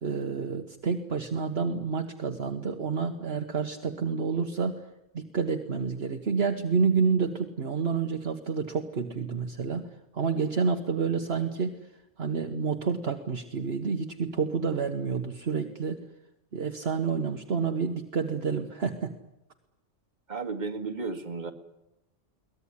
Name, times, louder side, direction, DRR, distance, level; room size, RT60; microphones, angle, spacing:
voice 1, 0.0-4.8 5.1-9.9 10.1-11.8 12.2-16.0 16.5-19.1, right 5 dB, 55° right, 5 dB, 1.5 m, -29 dB
voice 2, 20.3-21.5, right 4 dB, 35° right, 6 dB, 2.1 m, -33 dB
22.5 x 19.0 x 9.8 m, 0.91 s
omnidirectional pair, 1.3 m